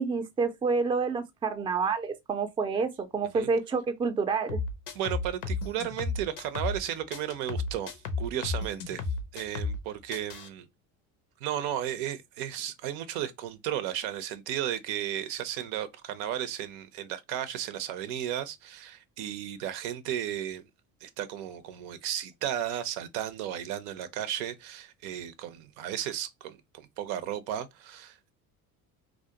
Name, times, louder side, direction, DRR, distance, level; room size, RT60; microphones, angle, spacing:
voice 1, 0.0-4.6, right 4 dB, 15° right, 0.4 m, -28 dB
sound 1, 4.5-6.8 7.1-9.8 10.1-10.5, left 3 dB, 85° left, 0.6 m, -33 dB
voice 2, 4.9-9.0 9.3-10.7 11.4-20.6 21.0-28.3, right 11 dB, 80° right, 0.5 m, -34 dB
2.5 x 2.1 x 2.7 m
supercardioid pair, 80°, 40 cm